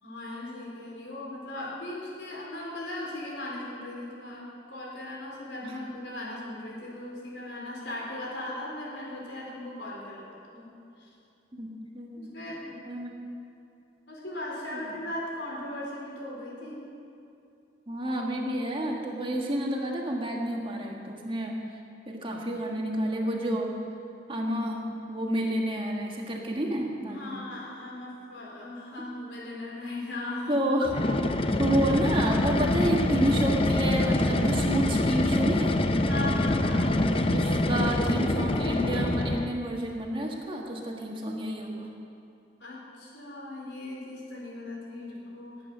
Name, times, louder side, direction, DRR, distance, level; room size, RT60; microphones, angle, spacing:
voice 1, 0.0-10.7 11.0-11.1 12.2-12.8 14.1-16.9 27.1-30.7 36.1-36.9 42.6-45.6, left 1 dB, 85° left, -4 dB, 4.0 m, -38 dB
voice 2, 11.5-12.3 12.8-13.1 14.7-14.9 17.9-21.6 22.1-23.7 24.3-27.4 30.5-30.9 31.6-35.8 37.2-41.9, right 1 dB, 30° right, 0 dB, 1.7 m, -30 dB
sound 1, 30.8-39.6, left 1 dB, 30° left, 0.6 m, -25 dB
20.0 x 8.6 x 6.1 m, 2.7 s
head